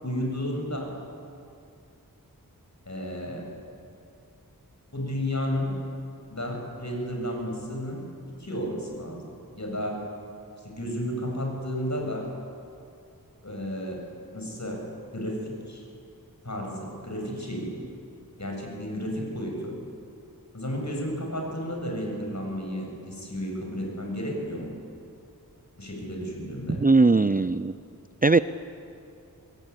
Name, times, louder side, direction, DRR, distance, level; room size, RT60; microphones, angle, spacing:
voice 1, 0.0-1.0 2.9-3.4 4.9-5.8 6.3-8.1 8.4-10.1 10.6-12.3 13.4-14.1 14.3-14.9 15.1-15.8 16.4-17.7 18.4-19.8 20.5-24.7 25.8-26.8, equal, 50° left, 0 dB, 7.7 m, -32 dB
voice 2, 26.7-27.7 28.2-28.4, right 3 dB, 25° right, 13 dB, 0.6 m, -19 dB
25.5 x 21.0 x 9.9 m, 2.5 s
wide cardioid pair, 60°, 36 cm